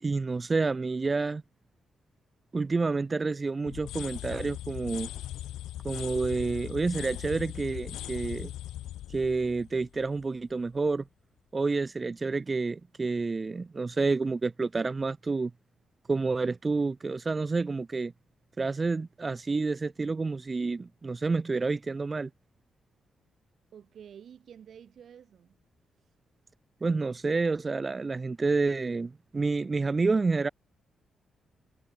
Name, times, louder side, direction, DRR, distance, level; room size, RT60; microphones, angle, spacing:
voice 1, 0.0-1.4 2.5-5.1 5.8-8.5 9.1-11.0 11.5-15.5 16.1-18.1 18.6-22.3 26.8-30.5, right 3 dB, 35° right, 0.5 m, -29 dB
sound 1, 3.7-10.5, left 13 dB, 90° left, 1.1 m, -39 dB
voice 2, 23.7-25.6 26.0-26.1, right 8 dB, 70° right, 2.1 m, -50 dB
cardioid pair, 65°, 0 cm